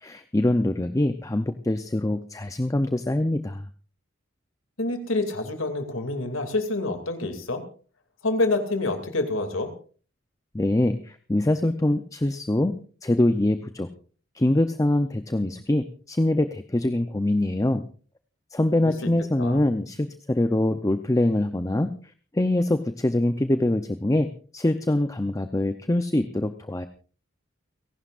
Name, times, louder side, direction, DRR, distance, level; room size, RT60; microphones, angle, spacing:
voice 1, 0.0-3.7 10.5-12.8 13.0-13.9 14.3-17.8 18.5-21.9 22.3-26.9, left 1 dB, 15° left, 9 dB, 0.6 m, -24 dB
voice 2, 4.8-7.6 8.2-9.7 18.8-19.1 19.4-19.6, left 2 dB, 85° left, 6 dB, 2.6 m, -27 dB
30.0 x 11.5 x 2.5 m, 0.39 s
head